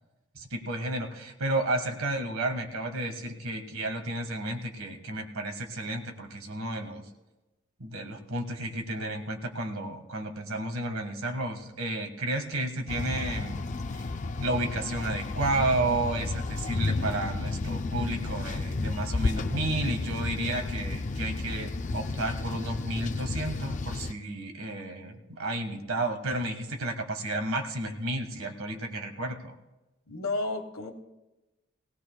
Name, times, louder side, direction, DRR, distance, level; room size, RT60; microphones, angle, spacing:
voice 1, 0.3-7.1 7.8-13.6 13.9-14.1 14.4-29.5, right 2 dB, 85° right, 4 dB, 1.6 m, -32 dB
sound 1, 12.9-24.1, left 3 dB, 35° left, 0.4 m, -32 dB
voice 2, 30.1-30.9, left 2 dB, 85° left, 5 dB, 1.3 m, -32 dB
19.0 x 18.0 x 2.3 m, 1.1 s
head